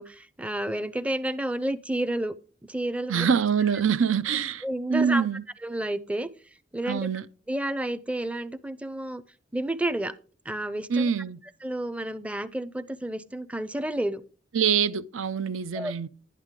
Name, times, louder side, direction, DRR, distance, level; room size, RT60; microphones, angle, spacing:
voice 1, 0.0-2.3 2.7-3.3 4.6-5.3 5.6-6.3 6.7-7.1 7.5-9.2 9.5-10.1 10.5-11.1 11.6-14.2 15.7-15.9, right 1 dB, 5° right, 0.5 m, -30 dB
voice 2, 3.1-4.6 4.9-5.4 6.9-7.3 10.9-11.4 14.5-16.1, right 6 dB, 80° right, 0.6 m, -25 dB
11.5 x 9.8 x 3.7 m
head